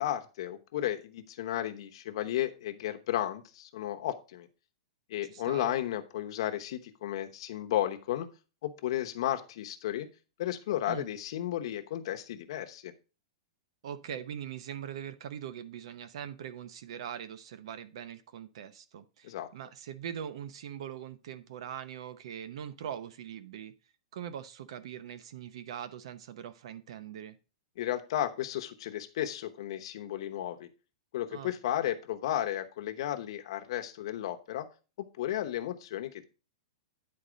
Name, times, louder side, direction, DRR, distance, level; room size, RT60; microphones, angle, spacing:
voice 1, 0.0-4.5 5.1-8.3 8.6-10.1 10.4-12.9 19.2-19.5 27.8-30.7 31.1-34.7 35.0-36.2, left 12 dB, 50° left, 1.0 m, -33 dB
voice 2, 5.2-5.7 10.9-11.1 13.8-23.7 24.1-27.4 31.3-31.5, right 9 dB, 60° right, 0.8 m, -42 dB
9.7 x 4.2 x 5.1 m
supercardioid pair, 170°, 3 cm